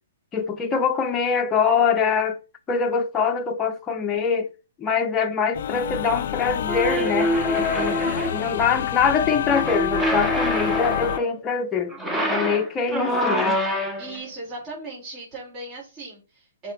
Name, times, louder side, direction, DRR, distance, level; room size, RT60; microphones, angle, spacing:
voice 1, 0.3-2.4 2.7-4.5 4.8-7.3 7.6-8.0 8.3-11.9 12.3-13.6, left 6 dB, 15° left, 1.0 m, -23 dB
sound 1, 5.5-11.2, left 10 dB, 50° left, 0.5 m, -28 dB
sound 2, 6.7-8.5 9.5-11.3 11.9-14.2, equal, 10° right, 1.6 m, -25 dB
voice 2, 14.0-16.7, right 2 dB, 25° right, 5.7 m, -37 dB
8.0 x 5.9 x 4.5 m
figure-of-eight pair, 115°, 0 cm